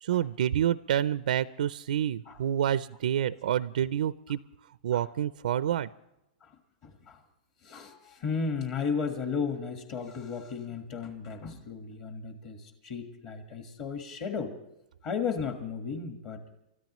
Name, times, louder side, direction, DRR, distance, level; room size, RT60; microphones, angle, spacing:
voice 1, 0.0-4.4 4.8-5.9, right 10 dB, 75° right, 15 dB, 0.5 m, -28 dB
voice 2, 6.4-7.2 7.6-14.6 15.0-16.4, left 5 dB, 30° left, 5 dB, 1.5 m, -34 dB
30.0 x 13.5 x 3.1 m, 0.88 s
supercardioid pair, 165°, 5 cm